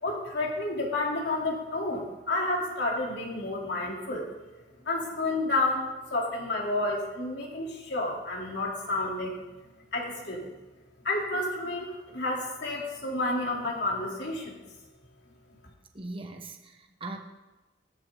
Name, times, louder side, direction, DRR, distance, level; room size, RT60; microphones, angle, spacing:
voice 1, 0.0-4.3 4.9-9.4 9.9-10.5 11.0-14.6, left 2 dB, 65° left, -2 dB, 3.7 m, -30 dB
voice 2, 15.9-17.2, right 2 dB, 30° right, 3 dB, 1.3 m, -40 dB
19.0 x 13.5 x 4.0 m, 1.2 s
head